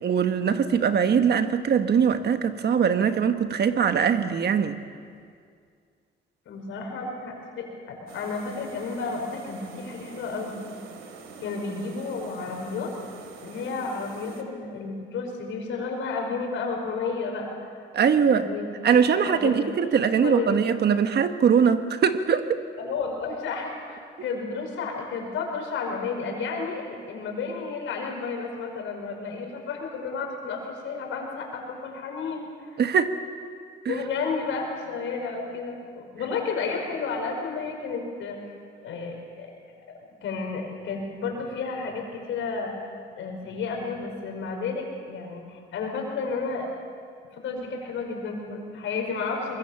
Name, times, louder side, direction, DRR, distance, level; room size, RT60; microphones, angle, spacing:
voice 1, 0.0-4.8 17.9-18.5 18.8-22.6 32.8-33.1 33.8-34.0, right 7 dB, 55° right, 8 dB, 1.5 m, -22 dB
voice 2, 6.5-10.6 11.4-12.9 13.4-17.7 18.3-18.7 19.1-19.9 20.2-20.6 22.8-32.8 33.9-38.4 38.8-39.5 40.2-42.7 43.2-46.7 47.3-49.6, left 4 dB, 80° left, 2 dB, 5.5 m, -32 dB
sound 1, 8.1-14.4, right 4 dB, 85° right, 2.7 m, -45 dB
24.0 x 21.5 x 7.2 m, 2.2 s
cardioid pair, 90°, 20 cm